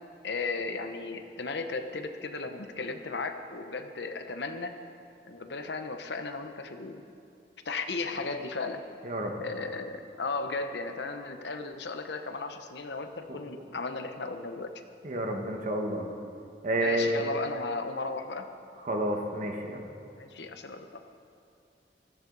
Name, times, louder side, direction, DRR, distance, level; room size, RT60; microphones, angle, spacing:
voice 1, 0.2-4.7 5.2-7.0 7.6-8.8 9.4-14.7 16.8-18.5 20.2-21.0, left 3 dB, 65° left, 7 dB, 0.9 m, -35 dB
voice 2, 15.0-16.1 16.6-17.2 18.9-19.8, right 1 dB, 45° right, 2 dB, 1.4 m, -29 dB
16.5 x 14.0 x 4.0 m, 2.4 s
head